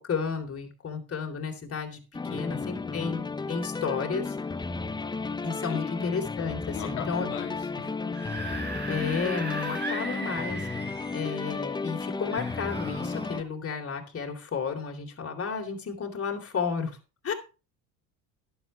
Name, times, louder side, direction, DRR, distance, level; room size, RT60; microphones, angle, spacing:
voice 1, 0.1-2.0 2.3-4.4 5.4-7.3 8.9-10.7 11.1-17.0 17.2-17.3, left 5 dB, 30° left, 3 dB, 3.7 m, -32 dB
sound 1, 2.1-13.4, left 4 dB, 10° left, 0.8 m, -33 dB
voice 2, 2.3-3.1 5.7-6.1 6.7-8.2, left 10 dB, 90° left, 1 dB, 2.6 m, -40 dB
Screaming / Screech, 8.0-11.4 12.3-13.4, right 3 dB, 25° right, 5.0 m, -38 dB
11.5 x 11.0 x 3.3 m, 0.31 s
supercardioid pair, 85°, 43 cm